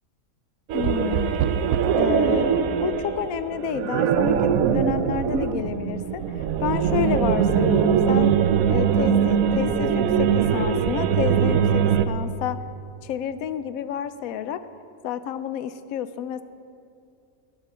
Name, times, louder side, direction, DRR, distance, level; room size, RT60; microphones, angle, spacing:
voice 1, 0.7-1.3 2.0-6.2 6.6-8.3 8.7-12.6 13.0-14.6 15.0-16.4, left 9 dB, 80° left, 12 dB, 1.0 m, -29 dB
sound 1, 0.7-12.1, right 7 dB, 80° right, 1.0 m, -22 dB
10.5 x 9.6 x 6.1 m, 2.5 s
omnidirectional pair, 1.5 m